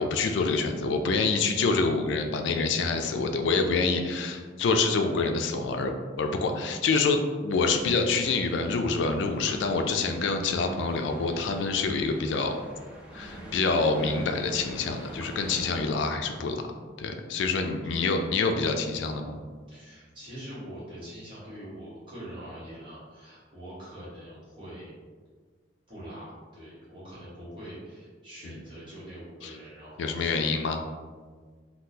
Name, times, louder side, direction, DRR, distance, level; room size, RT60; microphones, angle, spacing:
voice 1, 0.0-12.6 13.1-16.6 17.0-19.4 28.4-28.5 29.4-29.5 30.0-30.8, left 4 dB, 80° left, 5 dB, 0.3 m, -26 dB
voice 2, 3.0-3.4 17.8-18.2 19.7-24.9 25.9-30.6, equal, 25° right, -10 dB, 1.3 m, -44 dB
sound 1, 7.5-15.8, right 1 dB, 5° right, 0.4 m, -45 dB
3.6 x 2.3 x 2.7 m, 1.5 s
head